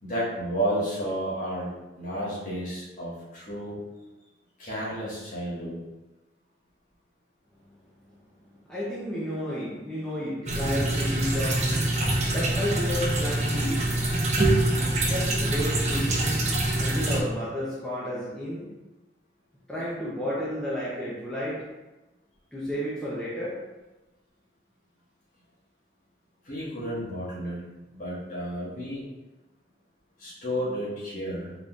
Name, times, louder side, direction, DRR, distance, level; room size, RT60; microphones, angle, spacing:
voice 1, 0.0-3.8 4.6-5.8 26.4-27.6 27.9-29.0 30.2-31.5, equal, 45° left, -8 dB, 1.5 m, -32 dB
voice 2, 8.6-11.8 12.3-13.9 14.7-16.5 16.8-18.7 19.7-21.6 22.5-23.5, equal, 5° left, -9 dB, 0.6 m, -32 dB
sound 1, 10.5-17.2, right 1 dB, 40° right, 0.6 m, -25 dB
4.0 x 3.7 x 2.4 m, 1.1 s
head